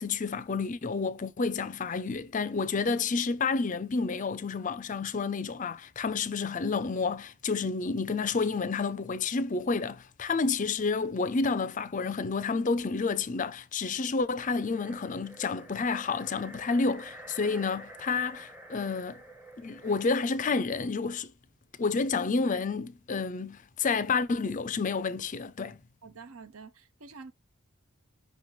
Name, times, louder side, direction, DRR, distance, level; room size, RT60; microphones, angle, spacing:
voice 1, 0.0-19.2 19.6-21.3 21.8-25.8, left 4 dB, 35° left, 0.4 m, -30 dB
sound 1, 14.2-20.6, right 1 dB, 10° right, 0.8 m, -49 dB
voice 2, 26.0-27.3, right 4 dB, 70° right, 0.7 m, -47 dB
5.6 x 3.1 x 5.5 m
head